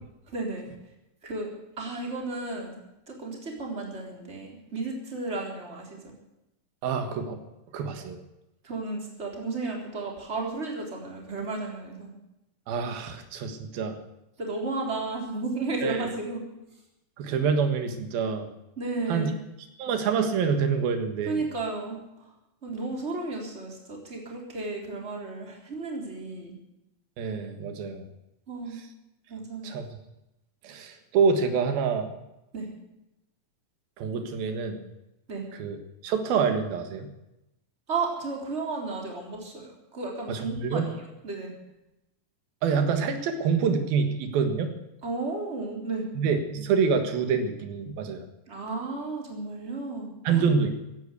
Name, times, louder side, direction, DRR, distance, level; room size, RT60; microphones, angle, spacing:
voice 1, 0.3-0.7 1.2-1.5 1.8-2.8 3.1-6.0 8.6-12.1 14.4-16.4 18.8-19.4 21.3-22.0 22.6-26.6 28.5-28.8 29.3-29.7 32.5-32.7 35.3-35.5 37.9-41.5 45.0-46.1 48.5-50.4, right 3 dB, 20° right, 0 dB, 3.7 m, -33 dB
voice 2, 6.8-7.4 7.7-8.2 12.7-14.0 15.8-16.1 17.2-18.5 19.1-19.3 19.8-21.4 27.2-28.1 29.6-29.9 30.6-32.1 34.0-34.8 35.5-35.8 36.0-37.1 40.3-40.9 42.6-44.7 46.2-48.3 50.3-50.9, right 5 dB, 90° right, 7 dB, 3.4 m, -26 dB
16.0 x 11.0 x 8.3 m, 0.91 s
omnidirectional pair, 4.1 m